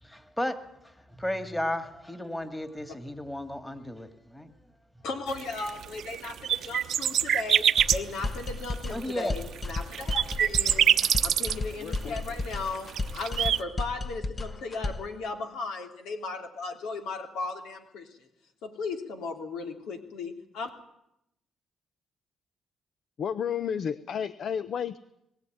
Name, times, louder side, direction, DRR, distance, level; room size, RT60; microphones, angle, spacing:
voice 1, 0.0-4.5 8.9-9.3, left 1 dB, 10° left, 2.2 m, -34 dB
voice 2, 5.0-7.6 7.9-18.3 18.6-20.7, left 3 dB, 85° left, 3.1 m, -36 dB
sound 1, 5.3-13.6, right 9 dB, 70° right, 0.9 m, -25 dB
sound 2, 7.8-15.1, left 2 dB, 25° left, 1.2 m, -34 dB
voice 3, 11.8-12.2 23.2-25.0, left 8 dB, 60° left, 0.8 m, -32 dB
21.5 x 16.0 x 9.5 m
cardioid pair, 90°, 0 cm